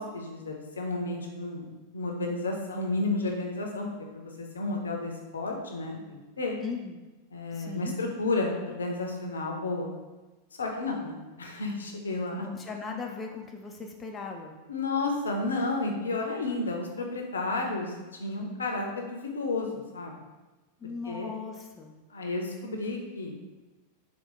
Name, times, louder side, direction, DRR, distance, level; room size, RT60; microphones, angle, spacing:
voice 1, 0.0-6.6 7.3-9.9 10.6-12.5 14.7-20.2 21.1-21.3 22.1-23.5, left 2 dB, 70° left, 2 dB, 0.6 m, -32 dB
voice 2, 6.6-7.0 7.5-7.9 12.4-14.5 20.8-21.9, left 5 dB, 20° left, 2 dB, 0.4 m, -38 dB
4.2 x 2.3 x 3.7 m, 1.2 s
figure-of-eight pair, 90°, 0 cm